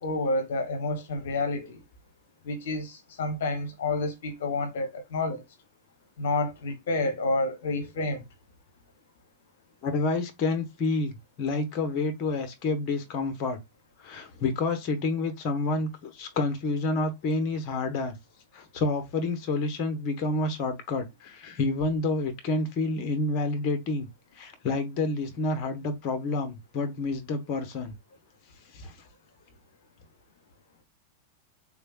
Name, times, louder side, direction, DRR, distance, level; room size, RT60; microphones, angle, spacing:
voice 1, 0.0-1.8 2.4-5.4 6.2-8.2, left 2 dB, 55° left, 1.0 m, -29 dB
voice 2, 9.8-13.6 14.0-18.2 18.5-24.1 24.4-27.9 28.7-28.9, left 3 dB, 40° left, 1.0 m, -29 dB
3.6 x 3.3 x 2.4 m
figure-of-eight pair, 90°, 0 cm